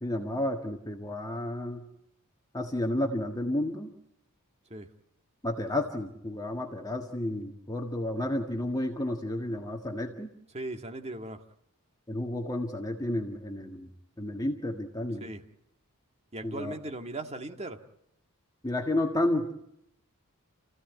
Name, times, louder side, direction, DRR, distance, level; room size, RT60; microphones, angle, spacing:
voice 1, 0.0-1.9 2.5-3.9 5.4-10.3 12.1-13.9 14.2-15.3 16.4-16.7 18.6-19.5, left 1 dB, 15° left, 3 dB, 1.6 m, -31 dB
voice 2, 10.5-11.4 15.2-15.4 16.3-17.8, right 2 dB, 30° right, 5 dB, 1.9 m, -38 dB
29.0 x 16.0 x 9.4 m, 0.79 s
head